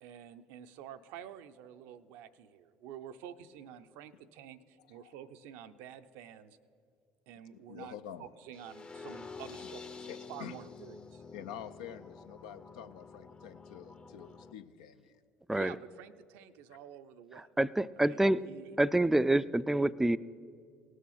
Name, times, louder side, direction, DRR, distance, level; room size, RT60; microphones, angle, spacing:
voice 1, 0.0-6.6 7.3-11.2 15.5-17.5 18.0-18.7, right 9 dB, 75° right, 10 dB, 0.5 m, -49 dB
voice 2, 7.7-8.3 10.1-10.5 11.3-15.2, left 9 dB, 80° left, 10 dB, 0.5 m, -47 dB
sound 1, 8.5-14.5, left 4 dB, 25° left, 0.7 m, -48 dB
voice 3, 17.6-18.4 18.8-20.2, right 1 dB, 10° right, 16 dB, 0.3 m, -27 dB
18.0 x 6.4 x 5.7 m, 2.4 s
hypercardioid pair, 60°, 4 cm